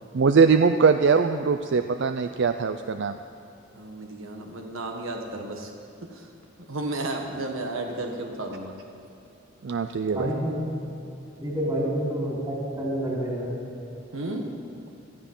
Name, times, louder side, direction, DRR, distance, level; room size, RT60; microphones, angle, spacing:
voice 1, 0.1-3.2 9.6-10.3, right 5 dB, 65° right, 8 dB, 0.5 m, -21 dB
voice 2, 3.7-5.7 6.0-6.3 6.6-8.7 14.1-14.5, right 2 dB, 85° right, 2 dB, 1.5 m, -33 dB
voice 3, 10.1-10.5 11.4-13.5, right 1 dB, 20° right, -4 dB, 4.5 m, -28 dB
17.0 x 13.0 x 5.5 m, 2.9 s
head